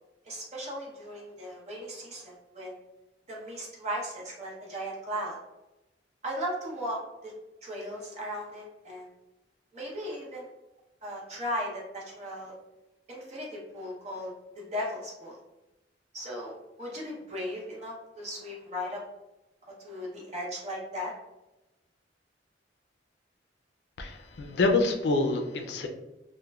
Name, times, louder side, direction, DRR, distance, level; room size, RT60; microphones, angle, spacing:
voice 1, 0.2-2.8 3.3-5.4 6.2-7.3 7.6-9.1 9.7-10.5 11.0-12.5 13.1-15.4 16.1-19.0 19.8-21.1, equal, 40° right, -3 dB, 0.8 m, -37 dB
voice 2, 24.0-25.9, left 3 dB, 65° left, 4 dB, 0.4 m, -26 dB
3.1 x 2.1 x 2.3 m, 1.0 s
head